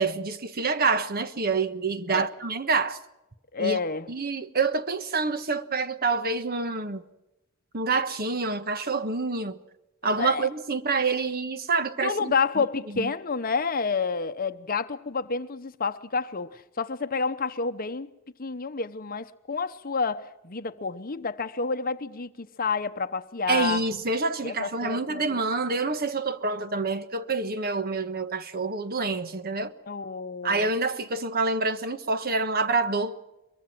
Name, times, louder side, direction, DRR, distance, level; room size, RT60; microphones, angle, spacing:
voice 1, 0.0-3.0 3.6-3.8 4.1-7.0 7.7-9.6 10.0-12.6 12.9-13.1 23.5-29.7 30.4-33.1, right 4 dB, 45° right, 1.3 m, -27 dB
voice 2, 3.5-4.1 10.2-10.5 12.0-18.1 18.4-23.8 24.4-25.3 29.9-30.7, left 5 dB, 40° left, 0.9 m, -29 dB
23.0 x 23.0 x 6.1 m
head